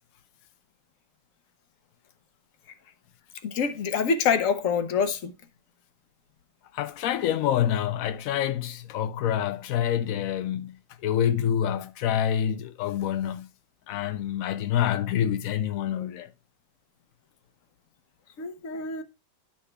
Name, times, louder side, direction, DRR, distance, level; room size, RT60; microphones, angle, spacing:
voice 1, 3.4-5.3 18.4-19.0, left 6 dB, 60° left, 0.9 m, -26 dB
voice 2, 6.7-10.8 11.0-13.5 13.9-16.3, left 10 dB, 90° left, 0.7 m, -27 dB
11.5 x 5.8 x 2.2 m
omnidirectional pair, 2.1 m